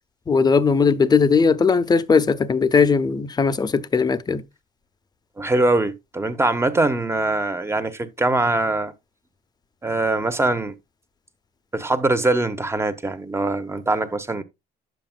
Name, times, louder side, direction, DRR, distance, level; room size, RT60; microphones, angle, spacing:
voice 1, 0.3-4.4, left 5 dB, 25° left, 0.7 m, -18 dB
voice 2, 5.4-8.9 9.8-10.8 11.7-14.4, right 2 dB, 15° right, 1.1 m, -22 dB
9.9 x 7.6 x 2.2 m
cardioid pair, 110°, 17 cm